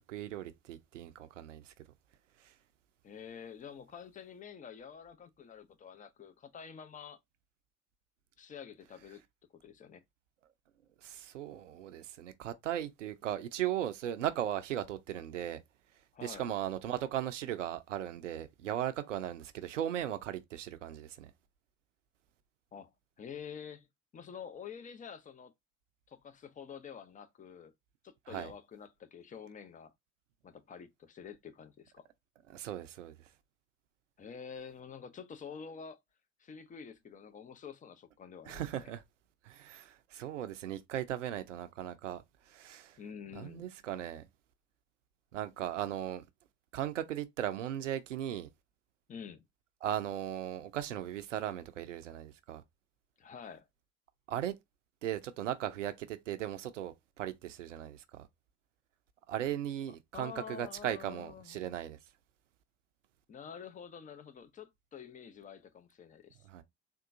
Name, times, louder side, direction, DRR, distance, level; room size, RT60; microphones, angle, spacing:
voice 1, 0.1-1.7 2.4-2.5 11.0-15.6 16.2-21.3 28.3-28.5 32.5-33.1 38.5-39.0 39.4-43.0 43.4-44.3 45.3-46.2 46.7-48.5 49.8-52.6 54.3-54.5 55.0-58.3 59.3-62.0 66.4-66.6, right 11 dB, 80° right, 0.5 m, -37 dB
voice 2, 3.0-7.2 8.4-9.2 9.5-10.0 16.1-16.5 22.7-22.9 23.2-23.9 24.1-25.5 26.1-27.7 28.0-29.9 30.4-32.1 34.2-36.0 36.4-38.9 43.0-43.7 49.1-49.5 53.2-53.7 60.1-61.7 63.3-66.5, left 7 dB, 20° left, 0.5 m, -48 dB
3.7 x 2.3 x 2.6 m
figure-of-eight pair, 55°, 36 cm